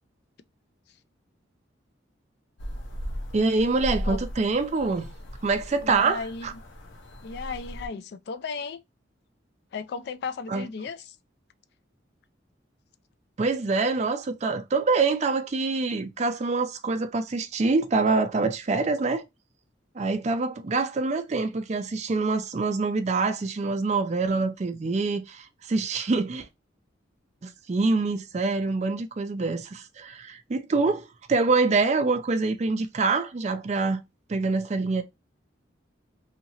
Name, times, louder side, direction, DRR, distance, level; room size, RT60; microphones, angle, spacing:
sound 1, 2.6-7.9, equal, 80° left, 0.7 m, -37 dB
voice 1, 3.3-5.1 5.4-6.5 10.5-10.6 13.4-19.2 20.0-26.5 27.4-34.0 34.3-35.0, right 3 dB, 35° right, 0.4 m, -25 dB
voice 2, 5.8-6.5 7.2-8.8 9.7-11.2, left 5 dB, 60° left, 0.3 m, -35 dB
2.8 x 2.7 x 2.7 m
head